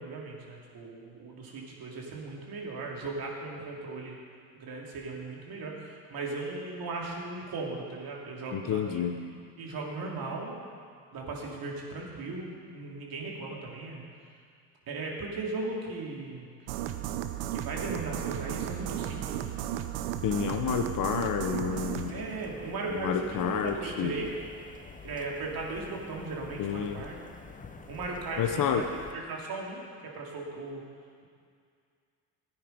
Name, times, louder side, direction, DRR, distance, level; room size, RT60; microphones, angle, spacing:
voice 1, 0.0-4.2 4.5-9.0 9.6-10.6 11.1-14.3 14.9-16.7 17.5-19.4 22.1-24.3 25.0-27.1 27.9-28.9 29.1-30.8, right 3 dB, 50° right, -2 dB, 2.9 m, -37 dB
voice 2, 8.5-9.1 20.2-22.1 22.9-24.2 26.6-27.0 28.4-28.8, left 7 dB, 45° left, 5 dB, 1.0 m, -29 dB
sound 1, 16.7-22.1, right 11 dB, 70° right, 0.9 m, -34 dB
sound 2, 21.7-29.1, left 4 dB, 15° left, 0.9 m, -48 dB
14.0 x 9.4 x 5.2 m, 2.2 s
hypercardioid pair, 75°, 47 cm